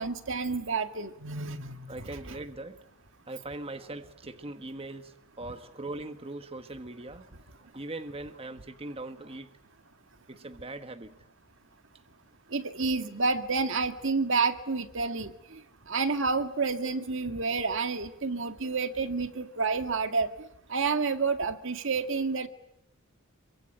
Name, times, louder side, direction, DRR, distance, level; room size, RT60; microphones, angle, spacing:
voice 1, 0.0-2.4 12.5-15.6 15.9-22.5, right 4 dB, 65° right, 8 dB, 2.0 m, -30 dB
voice 2, 1.9-2.8 3.3-7.3 7.7-9.5 10.3-11.1, right 2 dB, 30° right, 8 dB, 1.5 m, -40 dB
27.5 x 24.0 x 9.0 m, 0.80 s
head